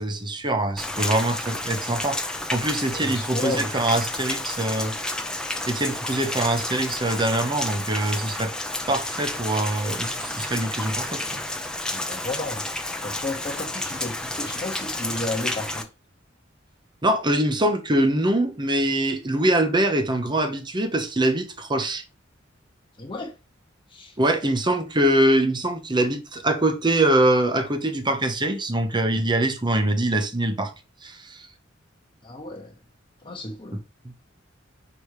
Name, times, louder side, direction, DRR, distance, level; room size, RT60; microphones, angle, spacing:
voice 1, 0.0-4.9 5.7-8.5 8.9-11.4 17.0-22.0 24.2-30.7 31.0-31.4, right 1 dB, 25° right, 0.9 m, -23 dB
Rain, 0.8-15.8, left 2 dB, 5° left, 0.7 m, -31 dB
voice 2, 2.9-3.7 11.9-12.6 13.0-15.9 23.0-23.4 23.9-24.2 32.2-32.7 33.2-33.8, left 2 dB, 25° left, 1.0 m, -32 dB
5.2 x 5.0 x 4.9 m
head